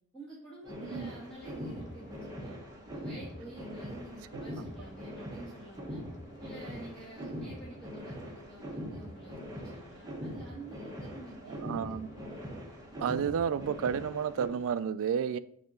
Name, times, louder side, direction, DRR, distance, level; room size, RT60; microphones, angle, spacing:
voice 1, 0.1-2.6 2.9-6.0 6.4-12.0, right 2 dB, 5° left, 1.8 m, -49 dB
sound 1, 0.6-14.5, equal, 15° right, 1.1 m, -42 dB
voice 2, 0.8-1.1 11.6-12.1 13.0-15.4, right 7 dB, 65° right, 0.3 m, -31 dB
sound 2, 1.4-14.8, left 1 dB, 55° left, 1.6 m, -59 dB
6.6 x 2.8 x 5.1 m
head